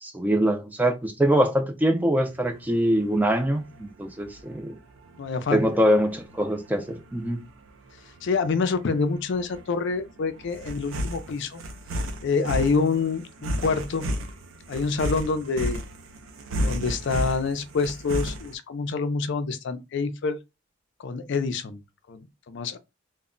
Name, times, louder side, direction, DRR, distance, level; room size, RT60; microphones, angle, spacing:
voice 1, 0.0-4.8 5.5-7.4, equal, 10° right, 0.3 m, -23 dB
sound 1, 2.3-18.6, equal, 85° right, 0.5 m, -34 dB
voice 2, 5.2-5.7 8.2-11.6 12.2-14.1 14.7-15.8 16.6-20.4 21.0-21.8 22.1-22.2 22.5-22.8, left 4 dB, 60° left, 0.4 m, -26 dB
2.1 x 2.0 x 3.6 m
head